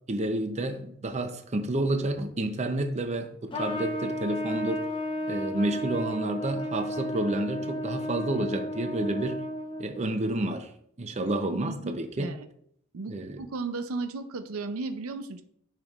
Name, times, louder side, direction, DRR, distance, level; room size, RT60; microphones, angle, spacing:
voice 1, 0.1-4.9 5.3-9.4 9.8-10.7 11.0-12.3 13.1-13.4, right 1 dB, 35° right, 7 dB, 0.6 m, -30 dB
Trumpet, 3.5-10.0, left 1 dB, 25° left, 0.7 m, -33 dB
voice 2, 11.1-12.5 12.9-15.4, right 3 dB, 90° right, 9 dB, 0.5 m, -36 dB
10.0 x 5.3 x 2.4 m, 0.68 s
head